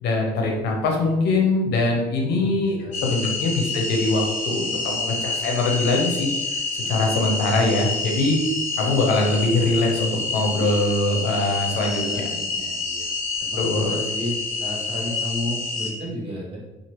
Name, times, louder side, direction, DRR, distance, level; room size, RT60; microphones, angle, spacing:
voice 1, 0.0-6.3 6.9-8.4 8.8-12.3 13.6-13.9, left 2 dB, 75° left, 1 dB, 0.7 m, -22 dB
voice 2, 2.4-3.5 6.8-7.4 12.0-13.1 13.5-16.6, left 1 dB, 30° right, -3 dB, 1.0 m, -33 dB
sound 1, 2.9-15.9, left 3 dB, 45° left, 1.3 m, -28 dB
2.8 x 2.5 x 2.9 m, 1.1 s
cardioid pair, 110°, 17 cm